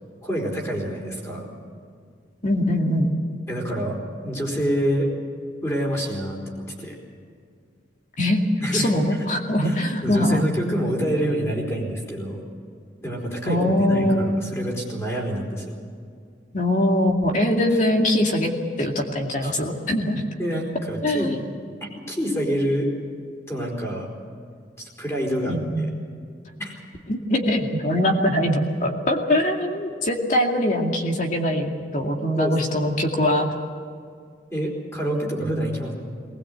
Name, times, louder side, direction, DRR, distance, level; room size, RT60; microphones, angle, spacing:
voice 1, 0.2-1.5 3.5-5.1 5.6-6.9 8.6-9.2 9.6-12.4 13.0-15.8 19.4-19.5 20.4-21.4 22.1-22.9 23.5-24.1 24.8-25.8 26.6-26.7 32.4-32.8 34.5-35.9, equal, 15° left, -1 dB, 4.5 m, -27 dB
voice 2, 2.4-3.1 8.2-8.4 8.7-10.4 13.4-14.4 16.5-18.5 18.8-20.2 21.0-21.4 25.5-25.9 27.1-33.5 35.4-35.6, left 1 dB, 40° left, 2 dB, 2.4 m, -22 dB
20.0 x 20.0 x 8.1 m, 2.2 s
head